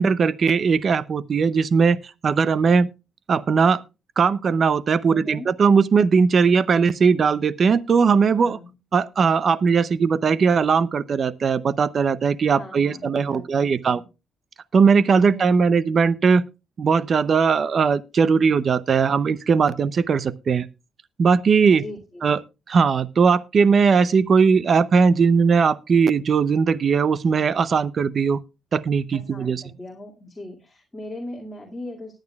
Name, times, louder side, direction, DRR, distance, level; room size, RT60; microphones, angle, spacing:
voice 1, 0.0-2.9 3.3-3.8 4.2-8.6 8.9-14.0 14.7-16.4 16.8-20.7 21.2-21.8 22.2-22.4 22.7-28.4 28.7-29.6, right 5 dB, 50° right, 0.6 m, -19 dB
voice 2, 5.1-5.5 8.4-8.8 12.5-14.1 15.2-15.8 21.7-22.3 29.1-32.2, left 1 dB, 15° left, 2.3 m, -39 dB
19.0 x 9.0 x 2.3 m
cardioid pair, 90°, 0 cm